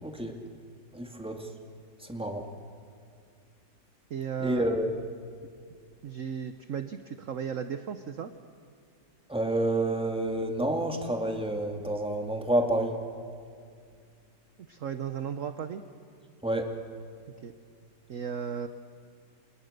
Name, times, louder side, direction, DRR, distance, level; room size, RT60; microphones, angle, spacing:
voice 1, 0.0-0.3 0.9-1.5 2.0-2.5 4.4-4.9 9.3-13.0 16.4-16.7, right 1 dB, 5° right, 3 dB, 2.0 m, -29 dB
voice 2, 4.1-4.7 6.0-8.3 14.7-15.8 17.4-17.5 18.1-18.7, right 7 dB, 55° right, 9 dB, 1.1 m, -35 dB
29.5 x 28.0 x 6.6 m, 2.3 s
omnidirectional pair, 2.0 m